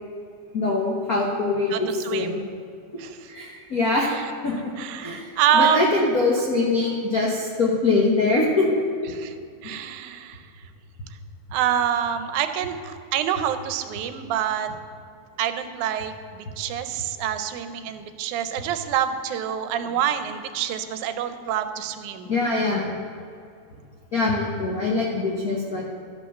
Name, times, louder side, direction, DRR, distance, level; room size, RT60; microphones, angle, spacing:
voice 1, 0.5-2.4 3.3-4.1 4.4-5.3 5.5-8.8 22.2-22.9 24.1-25.8, left 3 dB, 90° left, -2 dB, 0.8 m, -23 dB
voice 2, 1.7-2.5 3.0-3.3 4.1-4.2 4.8-6.0 9.2-9.3 9.6-10.4 11.5-14.7 15.4-22.3, right 9 dB, 80° right, 9 dB, 2.1 m, -26 dB
13.0 x 5.5 x 6.5 m, 2.3 s
omnidirectional pair, 3.5 m